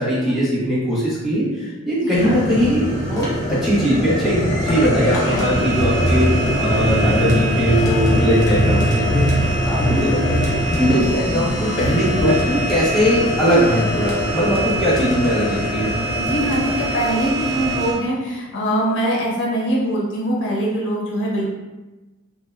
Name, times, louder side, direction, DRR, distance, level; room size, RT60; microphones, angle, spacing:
voice 1, 0.0-6.3 6.6-10.4 10.7-16.0, equal, ahead, -9 dB, 1.1 m, -20 dB
voice 2, 2.0-2.4 5.3-5.7 9.8-10.1 16.2-21.5, equal, 60° left, -3 dB, 0.6 m, -23 dB
sound 1, 2.1-17.9, equal, 20° left, 0.8 m, -21 dB
2.9 x 2.6 x 2.4 m, 1.1 s
head